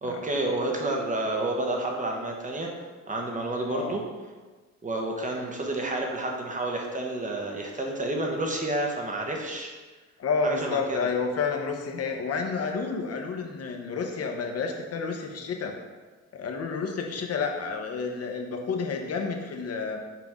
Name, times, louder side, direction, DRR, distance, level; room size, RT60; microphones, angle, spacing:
voice 1, 0.0-2.7 3.1-4.0 4.8-9.7 10.4-11.1, right 2 dB, 25° right, 1 dB, 1.2 m, -30 dB
voice 2, 3.6-4.0 10.2-15.7 16.3-20.0, left 5 dB, 55° left, 3 dB, 1.0 m, -30 dB
5.9 x 4.7 x 3.7 m, 1.3 s
cardioid pair, 90°, 30 cm